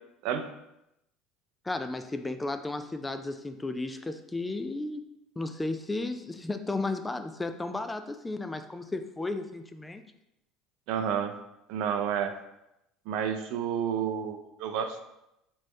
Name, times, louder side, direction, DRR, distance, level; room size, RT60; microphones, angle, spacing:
voice 1, 1.6-5.0 5.4-10.1, left 2 dB, 15° left, 8 dB, 0.3 m, -34 dB
voice 2, 10.9-11.3 11.7-12.3 13.1-15.0, right 8 dB, 70° right, 7 dB, 0.4 m, -30 dB
4.3 x 3.2 x 3.1 m, 0.87 s
hypercardioid pair, 85°, 0 cm